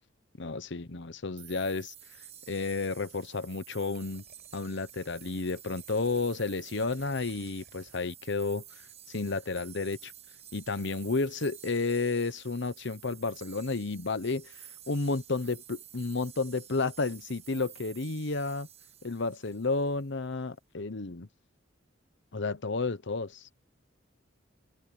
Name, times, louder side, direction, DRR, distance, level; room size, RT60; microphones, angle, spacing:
voice 1, 0.4-1.9 2.5-4.2 4.5-8.6 9.1-10.1 10.5-18.7 19.0-21.3 22.3-23.5, left 3 dB, 60° left, 1.0 m, -32 dB
sound 1, 1.4-20.1, right 10 dB, 30° right, 1.2 m, -51 dB
sound 2, 3.9-8.7, right 3 dB, 50° right, 7.6 m, -62 dB
head